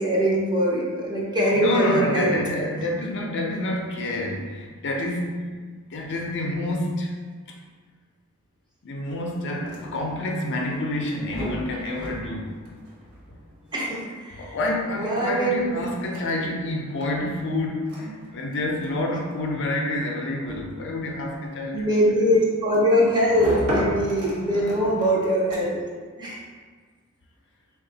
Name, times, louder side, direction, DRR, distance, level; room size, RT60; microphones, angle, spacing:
voice 1, 0.0-2.4 13.7-14.0 14.4-14.5 15.0-15.8 21.7-25.8 26.2-26.4, equal, 20° right, -4 dB, 0.7 m, -22 dB
voice 2, 1.5-5.5 5.9-7.2 8.8-12.5 13.3-13.4 14.3-22.0 24.4-25.0, left 1 dB, 55° left, 0 dB, 0.5 m, -28 dB
sound 1, 9.4-26.0, equal, 80° right, 0.9 m, -36 dB
3.5 x 2.3 x 3.9 m, 1.5 s
head